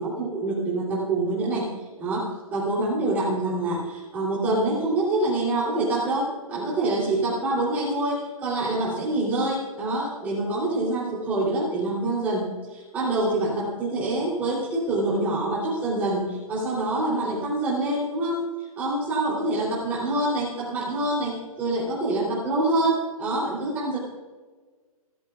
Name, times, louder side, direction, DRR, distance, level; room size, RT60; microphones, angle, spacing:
voice 1, 0.0-1.7 2.0-18.4 18.8-24.0, right 2 dB, 10° right, -7 dB, 3.2 m, -26 dB
29.5 x 13.0 x 2.4 m, 1.4 s
hypercardioid pair, 180°, 19 cm